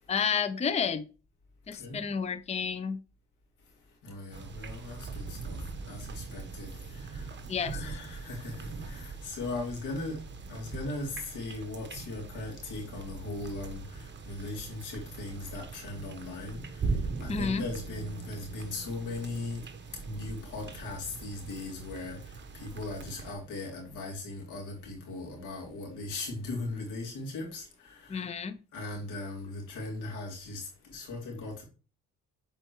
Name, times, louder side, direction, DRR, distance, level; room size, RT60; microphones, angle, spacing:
voice 1, 0.1-1.0 1.7-3.0 7.5-7.9 17.3-17.6 28.1-28.6, left 6 dB, 20° left, 0.6 m, -30 dB
voice 2, 4.0-10.2 10.5-16.9 17.2-19.6 20.0-28.3 28.7-31.6, left 2 dB, 85° left, 3.0 m, -39 dB
sound 1, 4.3-23.3, right 4 dB, 40° right, 1.1 m, -41 dB
7.7 x 4.4 x 3.1 m
cardioid pair, 90°, 30 cm